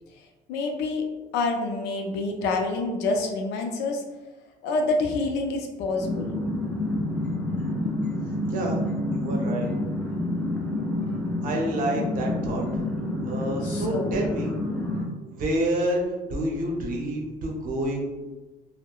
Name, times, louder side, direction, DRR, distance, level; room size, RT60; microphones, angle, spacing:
voice 1, 0.1-1.0 1.3-4.0 4.6-6.3 13.6-14.3, left 3 dB, 85° left, 3 dB, 0.5 m, -27 dB
sound 1, 6.0-15.1, left 1 dB, 5° left, 0.5 m, -28 dB
voice 2, 8.5-8.8 9.1-9.7 11.4-12.7 13.2-14.5 15.3-18.3, right 1 dB, 55° right, -1 dB, 0.7 m, -28 dB
2.7 x 2.0 x 2.3 m, 1.2 s
cardioid pair, 110°, 17 cm